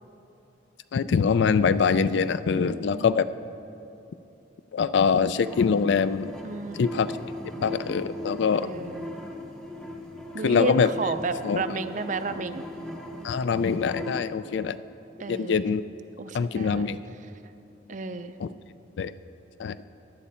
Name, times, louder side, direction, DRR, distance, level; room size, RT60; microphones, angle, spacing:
voice 1, 0.9-3.2 4.7-6.3 6.8-7.1 7.6-8.7 10.4-10.9 11.4-11.6 13.2-14.8 15.3-15.8 16.3-17.0 18.4-18.5 19.0-19.1 19.6-19.8, left 5 dB, 65° left, 14 dB, 0.3 m, -23 dB
voice 2, 2.6-3.2 6.4-6.9 8.6-9.0 10.3-12.6 15.2-15.6 16.2-16.9 17.9-18.3, right 3 dB, 40° right, 11 dB, 0.4 m, -32 dB
sound 1, 5.4-14.2, left 1 dB, 5° left, 0.7 m, -38 dB
15.0 x 11.0 x 4.3 m, 2.8 s
head